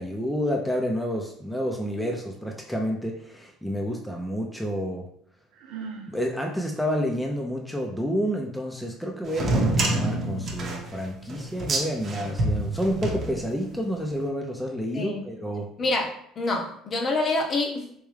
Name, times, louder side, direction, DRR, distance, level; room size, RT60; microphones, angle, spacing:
voice 1, 0.0-5.1 6.1-15.7, equal, ahead, 0 dB, 0.6 m, -29 dB
Sigh, 5.5-6.2, right 5 dB, 80° right, 0.8 m, -38 dB
sound 1, 9.3-13.8, right 2 dB, 40° right, 0.9 m, -27 dB
voice 2, 15.8-17.9, left 2 dB, 40° left, 2 dB, 0.8 m, -27 dB
3.6 x 3.0 x 3.2 m, 0.69 s
supercardioid pair, 105°, 0 cm